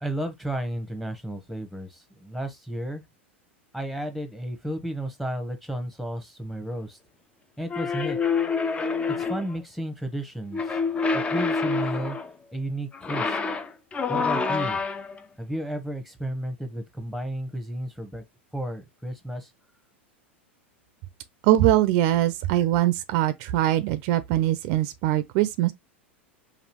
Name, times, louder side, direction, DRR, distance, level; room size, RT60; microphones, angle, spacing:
voice 1, 0.0-3.0 3.7-7.0 7.6-8.2 9.3-10.6 11.1-12.2 12.5-13.4 14.1-14.8 15.4-18.2 18.5-19.5, right 1 dB, ahead, 1.0 m, -32 dB
sound 1, 7.7-9.6 10.5-12.3 12.9-15.2, left 4 dB, 15° left, 0.5 m, -27 dB
voice 2, 21.4-25.7, right 14 dB, 50° right, 0.5 m, -22 dB
5.2 x 2.4 x 3.0 m
hypercardioid pair, 90°, 7 cm